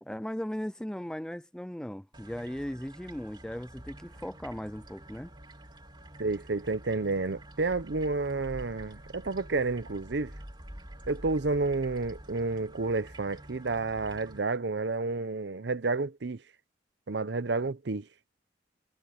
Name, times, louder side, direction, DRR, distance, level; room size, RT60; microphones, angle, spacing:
voice 1, 0.0-5.3, equal, 5° left, 0.4 m, -37 dB
sound 1, 2.1-14.4, right 1 dB, 25° right, 3.6 m, -48 dB
voice 2, 6.2-10.3 11.1-16.4 17.1-18.1, right 3 dB, 65° right, 0.7 m, -30 dB
head